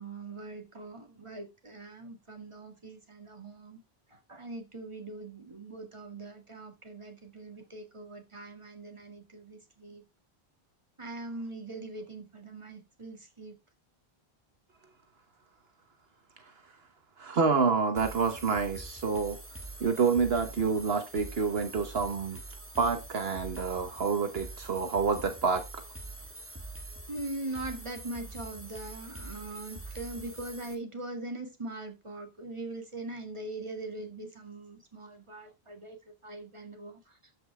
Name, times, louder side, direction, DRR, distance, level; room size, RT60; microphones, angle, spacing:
voice 1, 0.0-3.8 4.1-10.0 11.0-13.6 27.1-37.2, right 2 dB, 30° right, 2.1 m, -41 dB
voice 2, 17.2-19.4 19.8-22.4 22.8-25.8, right 5 dB, 75° right, 1.4 m, -28 dB
sound 1, 18.0-30.8, right 2 dB, 15° right, 1.5 m, -45 dB
13.0 x 5.7 x 3.4 m
omnidirectional pair, 1.0 m